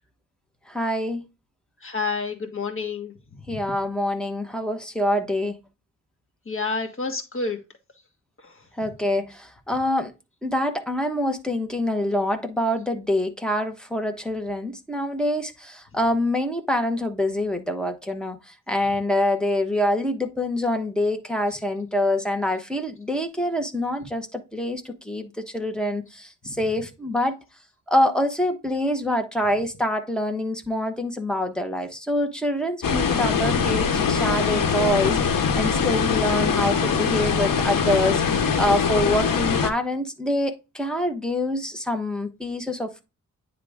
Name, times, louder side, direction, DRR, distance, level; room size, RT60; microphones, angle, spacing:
voice 1, 0.7-1.2 3.5-5.6 8.8-10.1 10.4-18.4 18.7-27.4 27.9-43.0, left 1 dB, ahead, 1.1 m, -25 dB
voice 2, 1.8-3.1 3.5-3.6 6.4-7.6 8.4-8.5, left 4 dB, 40° left, 1.7 m, -29 dB
sound 1, 32.8-39.7, left 6 dB, 90° left, 1.0 m, -22 dB
9.5 x 3.7 x 3.5 m
wide cardioid pair, 120°, 33 cm